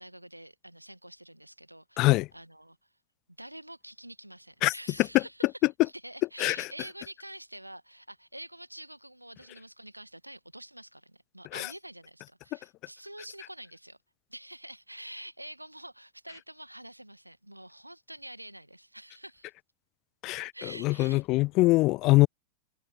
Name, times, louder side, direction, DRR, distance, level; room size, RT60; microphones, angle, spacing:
voice 1, 0.0-2.9 3.4-5.5 5.8-14.0 14.3-19.5 20.5-21.2, right 1 dB, 85° right, 1.7 m, -47 dB
voice 2, 2.0-2.3 4.6-4.7 6.4-6.7 11.5-11.7 20.2-22.3, left 21 dB, 40° left, 0.3 m, -23 dB
figure-of-eight pair, 90°, 0 cm